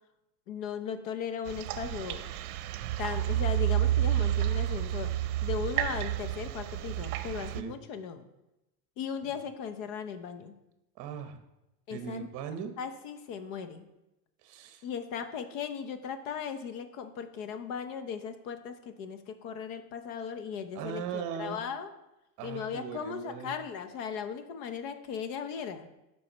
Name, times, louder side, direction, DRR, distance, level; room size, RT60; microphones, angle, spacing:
voice 1, 0.5-2.3 3.0-5.1 5.4-8.3 9.0-10.6 11.9-12.3 12.8-13.9 14.8-21.9 22.4-25.9, left 7 dB, 55° left, 10 dB, 0.9 m, -37 dB
sound 1, 1.5-7.6, right 13 dB, 65° right, 0.7 m, -30 dB
voice 2, 11.0-11.4 11.9-12.7 14.4-14.8 20.7-21.6 22.4-23.5, right 7 dB, 40° right, 8 dB, 0.9 m, -39 dB
7.5 x 4.7 x 5.4 m, 0.95 s
supercardioid pair, 150°, 47 cm